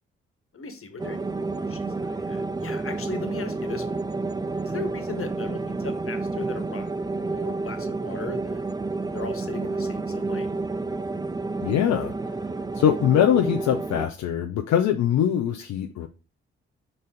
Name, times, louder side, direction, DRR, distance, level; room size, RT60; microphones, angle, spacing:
voice 1, 0.5-4.0 4.6-6.9 7.2-8.7 9.0-10.5, left 4 dB, 50° left, 1.7 m, -38 dB
sound 1, 1.0-14.1, right 3 dB, 15° right, 0.5 m, -30 dB
voice 2, 11.6-12.3 12.7-16.1, left 10 dB, 70° left, 0.7 m, -22 dB
5.4 x 3.9 x 5.1 m
hypercardioid pair, 45°, 29 cm